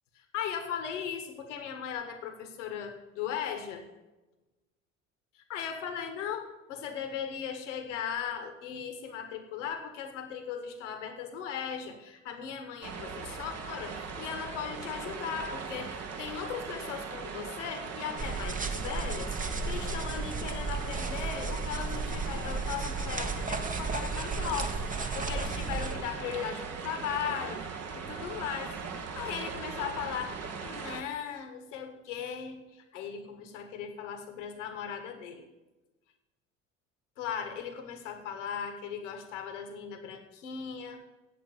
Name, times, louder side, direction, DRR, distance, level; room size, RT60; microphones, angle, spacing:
voice 1, 0.1-3.8 5.3-27.6 27.9-28.7 29.1-35.4 37.2-41.0, left 8 dB, 70° left, 7 dB, 1.6 m, -38 dB
sound 1, 12.8-31.0, right 5 dB, 40° right, 1.6 m, -39 dB
sound 2, 18.2-26.0, right 4 dB, 20° right, 1.2 m, -34 dB
8.4 x 8.3 x 7.2 m, 1.1 s
figure-of-eight pair, 60°, 37 cm